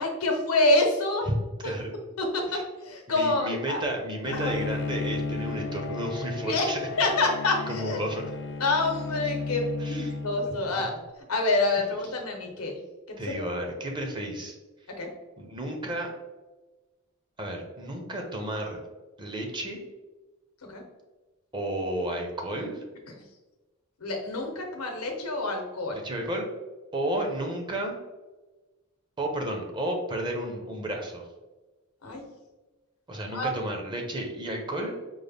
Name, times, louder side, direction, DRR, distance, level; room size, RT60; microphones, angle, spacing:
voice 1, 0.0-1.3 2.2-2.4 2.8-3.8 4.3-4.5 6.5-6.6 7.0-8.0 8.6-10.9 11.3-12.8 15.0-15.1 20.7-20.8 24.0-26.0 32.0-32.2 33.3-33.5, left 2 dB, 90° left, 2 dB, 0.8 m, -27 dB
voice 2, 1.6-2.0 2.5-2.6 3.1-6.8 7.7-8.2 9.8-10.1 10.8-10.9 13.2-14.5 15.4-16.1 17.4-18.8 19.2-19.8 21.5-22.8 25.9-26.5 26.9-28.0 29.2-31.3 33.1-34.9, right 1 dB, 20° right, 1 dB, 0.6 m, -32 dB
Bowed string instrument, 4.3-10.9, left 3 dB, 60° left, 0.3 m, -34 dB
5.2 x 2.1 x 3.4 m, 1.2 s
head